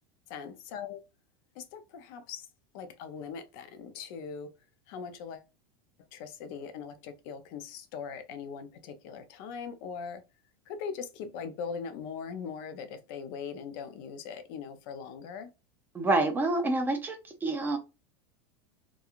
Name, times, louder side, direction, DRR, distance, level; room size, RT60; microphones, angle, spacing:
voice 1, 0.3-1.0 1.6-2.5 2.7-4.5 4.9-5.4 6.1-10.2 10.7-15.5, left 6 dB, 55° left, 0.5 m, -40 dB
voice 2, 15.9-17.2 17.4-17.8, right 2 dB, 15° right, 0.4 m, -27 dB
2.9 x 2.3 x 2.4 m
supercardioid pair, 145°, 14 cm